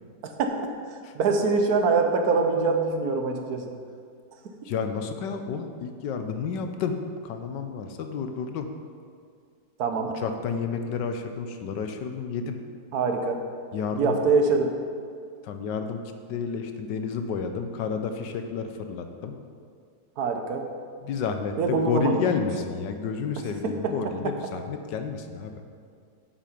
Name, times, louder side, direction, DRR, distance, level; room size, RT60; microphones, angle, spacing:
voice 1, 0.2-3.7 9.8-10.1 12.9-13.4 13.9-14.7 20.2-20.6 21.6-22.2 23.6-23.9, right 4 dB, 60° right, 4 dB, 1.2 m, -24 dB
voice 2, 4.6-7.0 7.2-8.7 10.0-12.6 13.7-14.2 15.4-16.0 16.3-19.4 21.0-25.6, left 6 dB, 70° left, 6 dB, 1.3 m, -30 dB
8.4 x 7.6 x 5.1 m, 2.2 s
omnidirectional pair, 2.1 m